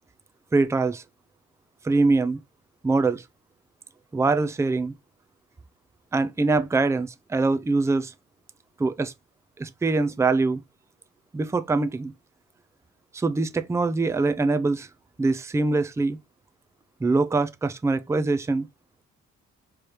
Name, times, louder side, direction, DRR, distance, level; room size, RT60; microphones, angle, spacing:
voice 1, 0.5-1.0 1.8-2.4 2.8-3.2 4.1-4.9 6.1-8.1 8.8-9.1 9.6-10.6 11.3-12.1 13.1-14.9 15.2-16.2 17.0-18.7, right 3 dB, 10° right, 0.4 m, -23 dB
4.7 x 3.2 x 2.9 m
cardioid pair, 90°, 30 cm